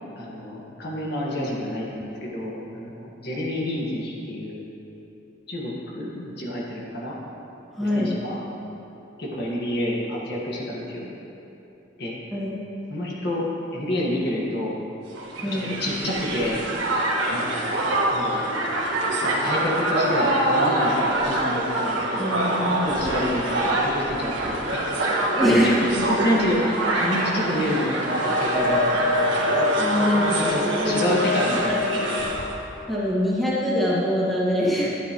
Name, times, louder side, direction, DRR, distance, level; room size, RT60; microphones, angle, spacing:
voice 1, 0.2-4.6 5.5-7.2 7.8-8.4 9.2-11.1 12.0-12.1 12.9-13.4 13.7-14.8 15.5-17.5 18.1-18.4 19.4-22.4 22.7-25.2 25.5-29.3 30.1-32.2, left 1 dB, 55° left, -4 dB, 1.7 m, -28 dB
voice 2, 7.7-8.1 12.3-12.6 15.4-15.7 22.2-22.9 25.3-25.7 29.8-30.5 30.8-31.1 32.9-35.0, equal, ahead, -9 dB, 1.9 m, -23 dB
Crowd, 15.1-32.5, right 1 dB, 85° right, 1.5 m, -24 dB
12.0 x 10.0 x 3.1 m, 3.0 s
head